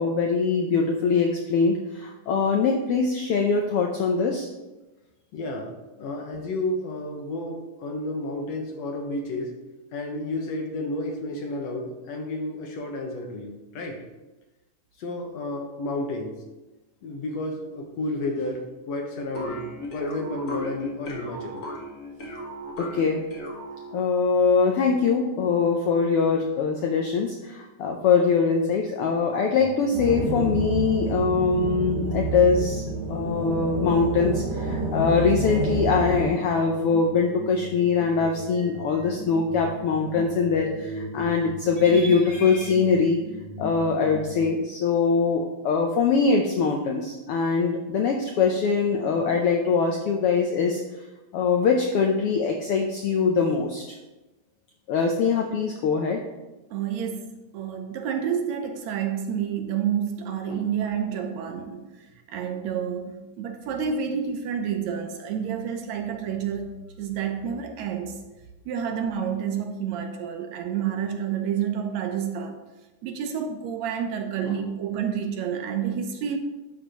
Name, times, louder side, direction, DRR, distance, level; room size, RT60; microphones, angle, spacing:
voice 1, 0.0-4.5 22.8-23.3 23.9-32.8 33.1-43.2 43.6-50.8 51.3-53.8 54.9-56.2, left 5 dB, 85° left, 2 dB, 1.3 m, -23 dB
voice 2, 5.3-5.7 6.0-9.5 9.9-14.0 15.0-16.3 17.0-21.6 60.5-60.7 74.4-74.6, left 2 dB, 65° left, 2 dB, 2.1 m, -31 dB
sound 1, 19.4-24.1, equal, 45° left, 1.0 m, -36 dB
sound 2, 29.6-44.4, right 1 dB, 25° left, 2.2 m, -38 dB
sound 3, 29.9-36.2, right 3 dB, 55° right, 4.5 m, -29 dB
voice 3, 56.7-68.2 68.7-72.6 73.0-76.4, right 8 dB, 75° right, 5 dB, 1.9 m, -29 dB
11.5 x 7.4 x 3.0 m, 1.1 s
omnidirectional pair, 3.5 m